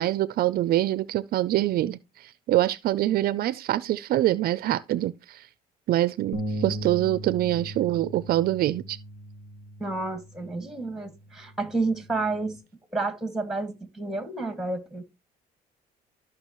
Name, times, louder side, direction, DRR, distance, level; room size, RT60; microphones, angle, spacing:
voice 1, 0.0-5.5 5.9-9.0, right 14 dB, 60° right, 0.5 m, -25 dB
sound 1, 6.3-12.6, equal, 45° left, 2.1 m, -38 dB
voice 2, 9.8-12.6 12.9-15.0, right 3 dB, ahead, 2.0 m, -30 dB
13.5 x 6.0 x 3.0 m
cardioid pair, 110°, 17 cm